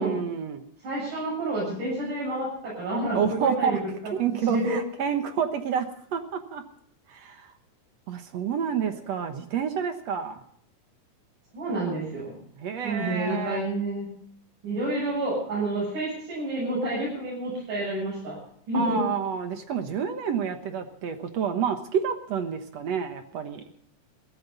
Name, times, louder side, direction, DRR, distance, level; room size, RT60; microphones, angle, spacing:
voice 1, 0.0-0.6 3.1-3.8 4.1-6.6 7.1-7.5 8.1-10.4 12.6-13.6 18.7-23.6, right 7 dB, 60° right, 7 dB, 2.2 m, -29 dB
voice 2, 0.8-3.8 4.5-4.8 11.5-12.4 12.8-14.1 14.6-18.4 18.7-19.0, right 1 dB, 85° right, -7 dB, 9.4 m, -29 dB
21.5 x 15.0 x 4.0 m, 0.65 s
omnidirectional pair, 3.6 m